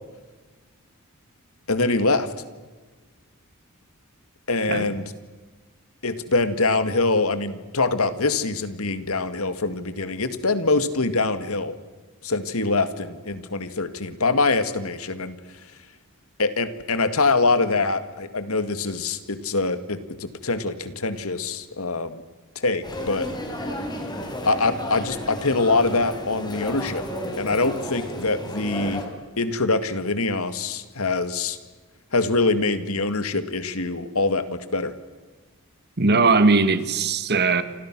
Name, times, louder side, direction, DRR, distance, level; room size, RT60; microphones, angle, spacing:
voice 1, 1.7-2.3 4.5-5.1 6.0-11.7 12.2-15.4 16.4-22.2 22.6-23.3 24.5-27.0 27.4-29.0 29.4-31.6 32.1-34.9, left 3 dB, 75° left, 2.1 m, -24 dB
sound 1, 22.8-29.0, equal, 20° left, 4.3 m, -32 dB
voice 2, 36.0-37.6, right 4 dB, 45° right, 1.8 m, -19 dB
28.5 x 26.5 x 6.2 m
head